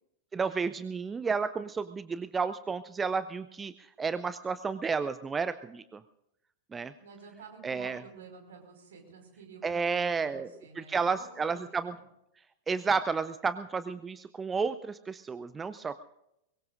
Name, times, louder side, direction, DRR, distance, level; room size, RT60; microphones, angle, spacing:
voice 1, 0.3-6.0 6.7-6.9 7.6-8.0 9.6-10.5 10.8-12.0 12.7-16.0, right 5 dB, 15° right, 14 dB, 0.5 m, -32 dB
voice 2, 7.0-11.3 11.5-12.1, right 5 dB, 60° right, 3 dB, 5.0 m, -50 dB
23.5 x 22.5 x 2.6 m, 0.84 s
figure-of-eight pair, 90°, 0 cm